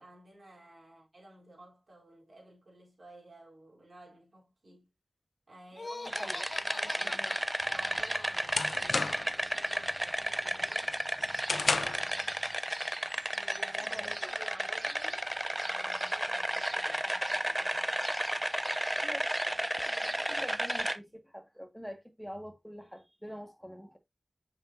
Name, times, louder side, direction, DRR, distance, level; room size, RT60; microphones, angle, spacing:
voice 1, 0.0-4.9 5.5-11.2 11.5-12.4 13.3-15.3 15.6-18.2, right 1 dB, 60° right, 3.9 m, -54 dB
Laughter, 5.7-8.5, left 2 dB, 55° left, 1.0 m, -44 dB
sound 1, 6.1-21.0, right 1 dB, 15° right, 0.7 m, -33 dB
voice 2, 6.8-7.3 13.8-14.3 19.0-19.3 20.3-24.0, equal, ahead, 2.1 m, -45 dB
sound 2, 7.7-9.4 9.8-10.2 10.6-12.1, left 3 dB, 70° left, 0.7 m, -33 dB
7.0 x 6.0 x 2.8 m
cardioid pair, 45°, 0 cm